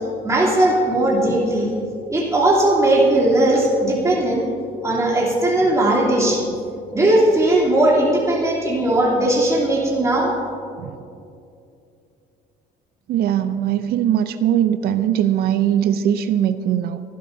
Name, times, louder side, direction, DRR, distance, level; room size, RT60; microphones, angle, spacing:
voice 1, 0.2-1.7 2.1-4.4 4.8-6.4 6.9-10.3, right 1 dB, 20° right, -6 dB, 3.2 m, -18 dB
voice 2, 13.1-17.0, right 10 dB, 65° right, 10 dB, 0.6 m, -20 dB
24.0 x 12.5 x 2.8 m, 2.6 s
cardioid pair, 110°, 17 cm